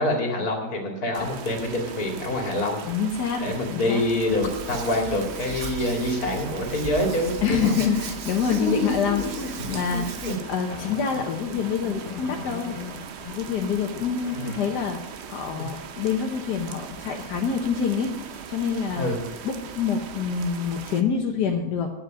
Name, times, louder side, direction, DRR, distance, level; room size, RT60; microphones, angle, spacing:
voice 1, 0.0-2.8 3.4-7.7 8.5-10.3 11.8-11.9 14.3-14.5 19.0-19.2, left 1 dB, 65° left, 2 dB, 2.7 m, -26 dB
sound 1, 1.1-21.0, right 7 dB, 55° right, 0.8 m, -40 dB
voice 2, 2.9-3.4 3.7-4.0 7.4-10.0 10.5-12.8 13.3-18.2 18.5-19.1 19.4-21.9, left 6 dB, 85° left, 1 dB, 1.6 m, -26 dB
Hands, 4.3-10.4, right 6 dB, 85° right, 1.7 m, -37 dB
sound 2, 10.7-13.4 13.9-14.9 17.8-17.9 18.4-18.7, left 6 dB, 40° left, 0.6 m, -40 dB
9.5 x 7.4 x 9.1 m, 1.0 s
omnidirectional pair, 1.7 m